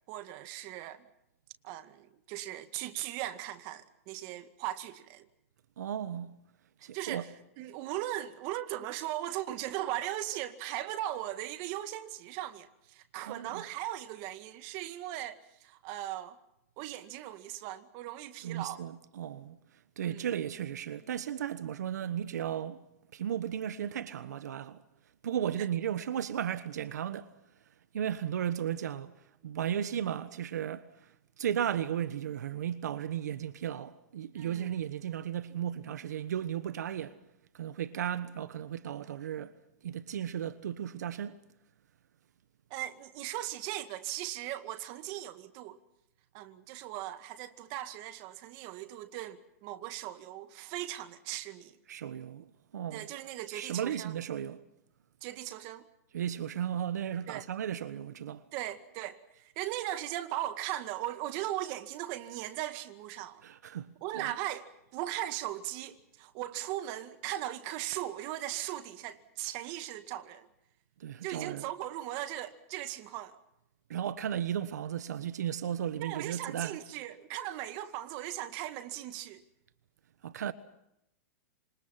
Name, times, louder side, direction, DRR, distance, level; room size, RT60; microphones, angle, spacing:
voice 1, 0.1-1.1 1.6-5.3 6.8-16.4 16.8-18.8 20.0-20.3 34.3-34.7 42.7-45.8 46.3-51.8 52.9-54.2 55.2-55.9 57.3-57.5 58.5-63.4 64.0-70.5 71.2-73.4 76.0-79.4, right 14 dB, 40° right, 2.0 m, -38 dB
voice 2, 5.8-6.3 6.8-7.2 13.3-13.6 18.4-19.6 20.0-22.8 23.1-24.8 25.2-27.3 27.9-29.1 29.4-37.2 37.5-39.5 39.8-41.4 51.9-53.1 53.5-54.6 56.1-58.4 63.4-64.3 71.0-71.7 73.9-76.8 80.2-80.5, right 9 dB, 80° right, 1.3 m, -35 dB
28.0 x 26.5 x 5.9 m
hypercardioid pair, 145°, 9 cm